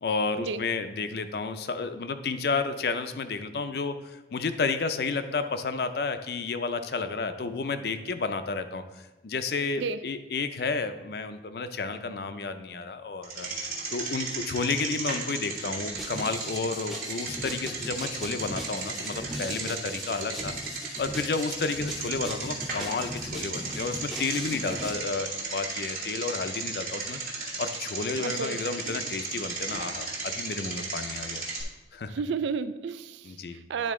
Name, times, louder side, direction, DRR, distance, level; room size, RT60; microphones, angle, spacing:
voice 1, 0.0-13.5 13.9-20.5 21.0-27.2 27.6-31.4 31.9-32.1 33.2-33.6, left 4 dB, 60° left, 9 dB, 0.4 m, -31 dB
Bicycle, 13.2-31.6, right 3 dB, 50° right, 1.2 m, -35 dB
sound 1, 15.9-24.9, equal, ahead, 0.6 m, -39 dB
voice 2, 28.2-28.6 32.1-33.9, right 5 dB, 85° right, 13 dB, 0.3 m, -32 dB
10.0 x 3.8 x 3.7 m, 1.1 s
head